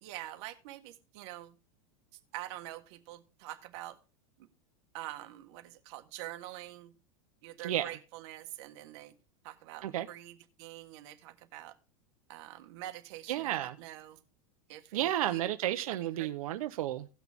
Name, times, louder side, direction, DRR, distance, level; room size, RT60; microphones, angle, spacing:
voice 1, 0.0-1.6 2.3-4.0 4.4-4.5 4.9-6.9 7.4-9.1 9.4-11.7 12.3-14.2 14.7-15.4 15.9-16.3, right 15 dB, 55° right, 7 dB, 1.5 m, -45 dB
voice 2, 13.3-13.7 14.9-17.1, right 13 dB, 90° right, 10 dB, 0.8 m, -32 dB
17.5 x 6.0 x 3.5 m, 0.35 s
supercardioid pair, 165°, 18 cm